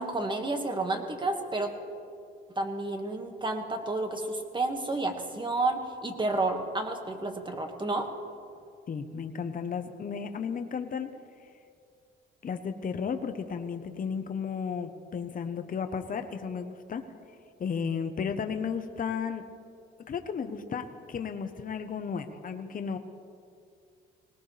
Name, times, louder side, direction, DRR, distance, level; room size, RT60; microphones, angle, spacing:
voice 1, 0.0-1.7 2.6-8.1, right 2 dB, 25° right, 4 dB, 2.0 m, -30 dB
voice 2, 8.9-11.1 12.4-17.0 17.6-19.5 20.1-23.0, left 6 dB, 45° left, 7 dB, 1.1 m, -34 dB
20.0 x 19.0 x 3.4 m, 2.4 s
cardioid pair, 90°, 20 cm